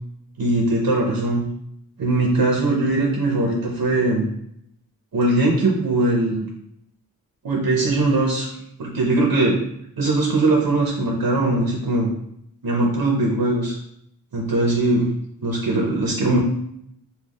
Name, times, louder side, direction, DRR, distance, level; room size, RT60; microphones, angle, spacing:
voice 1, 0.4-1.4 2.0-4.3 5.1-6.5 7.4-8.5 8.8-9.6 10.0-12.1 12.6-13.8 14.3-15.1 15.4-16.4, right 2 dB, 70° right, -1 dB, 0.9 m, -20 dB
7.0 x 2.3 x 2.4 m, 0.73 s
wide cardioid pair, 115°, 35 cm